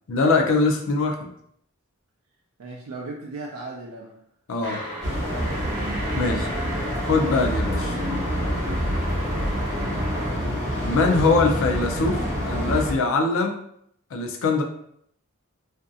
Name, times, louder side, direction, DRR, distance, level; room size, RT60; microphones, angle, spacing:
voice 1, 0.1-1.3 4.5-4.8 6.1-6.5 7.1-8.0 10.8-13.7 14.1-14.6, left 3 dB, 65° left, 2 dB, 0.4 m, -22 dB
voice 2, 2.6-4.2 6.1-7.0 9.1-9.6, right 3 dB, 85° right, -1 dB, 0.4 m, -38 dB
sound 1, 4.6-10.3, right 1 dB, 40° right, 0.8 m, -36 dB
sound 2, 5.0-12.9, equal, 15° right, 0.9 m, -26 dB
2.6 x 2.5 x 2.3 m, 0.69 s
head